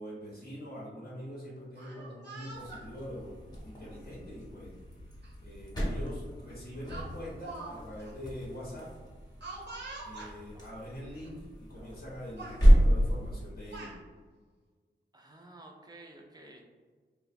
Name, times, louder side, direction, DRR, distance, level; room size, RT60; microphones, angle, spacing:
voice 1, 0.0-4.7 5.4-8.9 10.0-14.0, equal, 55° left, -7 dB, 0.7 m, -44 dB
Speech, 1.7-2.8 3.8-4.0 5.2-5.3 5.7-5.9 6.9-7.7 8.0-8.1 9.4-10.3 11.2-11.3 11.7-12.1 12.4-12.6 13.4-14.0, right 3 dB, 70° right, 0.7 m, -44 dB
sound 1, 2.5-13.6, equal, 20° left, 0.8 m, -30 dB
voice 2, 15.1-16.7, right 2 dB, 20° right, 1 dB, 0.4 m, -52 dB
3.1 x 2.1 x 2.5 m, 1.5 s
wide cardioid pair, 100°, 19 cm